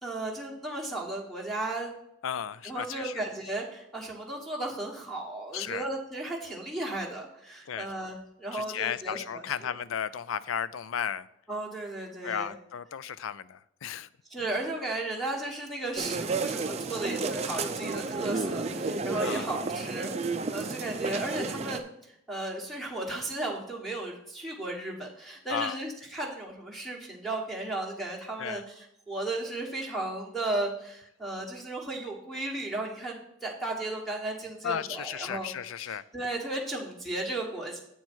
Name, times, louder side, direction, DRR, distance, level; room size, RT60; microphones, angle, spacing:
voice 1, 0.0-1.9 2.6-9.4 11.5-12.5 14.3-35.5 35.9-37.8, right 2 dB, ahead, -1 dB, 1.4 m, -35 dB
voice 2, 2.2-3.2 5.5-5.9 7.7-7.9 8.5-11.3 12.2-14.1 19.2-19.5 25.5-25.8 28.4-28.6 34.6-36.0, left 8 dB, 80° left, 16 dB, 0.4 m, -34 dB
sound 1, 16.0-21.8, right 3 dB, 30° right, 0.5 m, -32 dB
8.2 x 4.4 x 6.1 m, 0.78 s
head